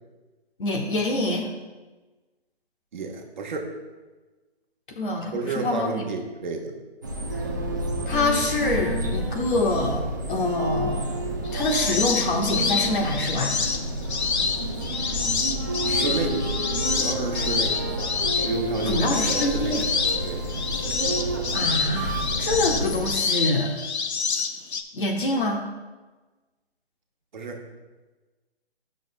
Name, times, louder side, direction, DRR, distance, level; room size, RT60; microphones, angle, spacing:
voice 1, 0.6-1.5 5.0-6.0 8.1-11.0 11.5-13.5 18.9-19.8 21.5-23.7 24.9-25.6, left 2 dB, 50° left, 2 dB, 1.3 m, -25 dB
voice 2, 2.9-3.7 5.3-6.7 15.8-16.4 16.9-17.8 18.4-19.8 20.2-20.4 27.3-27.6, right 4 dB, 45° right, 2 dB, 1.1 m, -31 dB
sound 1, 7.0-23.2, right 1 dB, 20° right, 0.4 m, -29 dB
sound 2, 11.4-24.8, left 5 dB, 85° left, 0.8 m, -27 dB
11.0 x 6.4 x 2.2 m, 1.2 s
hypercardioid pair, 155°, 32 cm